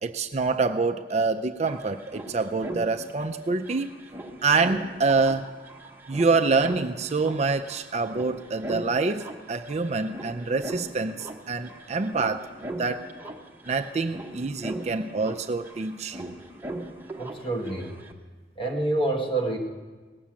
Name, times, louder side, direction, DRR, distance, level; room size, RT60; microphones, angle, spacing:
voice 1, 0.0-3.9 4.4-5.5 6.1-12.5 12.8-13.1 13.7-16.3, right 4 dB, 40° right, 7 dB, 0.4 m, -26 dB
sound 1, 1.1-1.2 1.4-18.1, right 1 dB, 10° right, 1.0 m, -40 dB
voice 2, 17.2-17.9 18.6-19.6, right 2 dB, 30° left, 0 dB, 1.7 m, -27 dB
18.5 x 7.1 x 7.5 m, 1.4 s
head